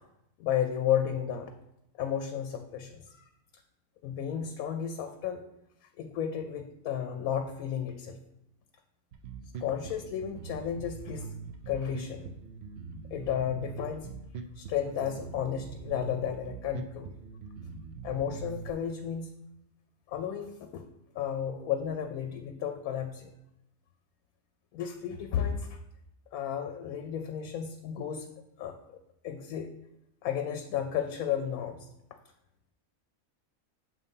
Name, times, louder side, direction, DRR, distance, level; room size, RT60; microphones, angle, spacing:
voice 1, 0.4-1.5 2.0-3.3 4.0-5.4 6.0-8.2 9.6-11.3 11.7-12.3 13.1-14.1 14.6-17.1 18.0-19.3 20.1-20.8 21.1-23.3 24.7-25.7 26.3-28.3 28.6-29.0 29.2-29.7 30.2-31.9, left 9 dB, 85° left, 5 dB, 1.0 m, -33 dB
Bass guitar, 9.1-18.7, right 5 dB, 65° right, 0.7 m, -42 dB
7.5 x 2.7 x 5.3 m, 0.82 s
omnidirectional pair, 1.5 m